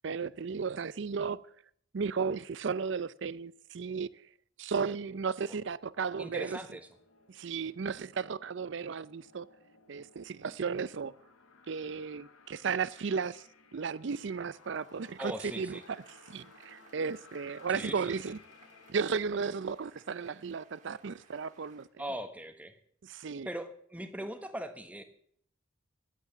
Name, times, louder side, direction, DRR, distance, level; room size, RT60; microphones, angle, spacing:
voice 1, 0.0-1.4 1.9-4.1 4.6-6.6 7.3-9.5 9.9-11.1 11.7-13.5 13.7-15.8 16.3-18.4 18.9-21.9 23.0-23.5, right 5 dB, 60° right, 0.5 m, -34 dB
sound 1, 6.1-18.9, left 4 dB, 80° left, 1.3 m, -59 dB
voice 2, 6.2-6.9 15.2-15.8 17.7-18.2 22.0-22.8 23.4-25.0, right 1 dB, 5° right, 1.1 m, -40 dB
sound 2, 14.2-21.9, right 4 dB, 35° right, 1.7 m, -62 dB
12.0 x 8.2 x 7.1 m
head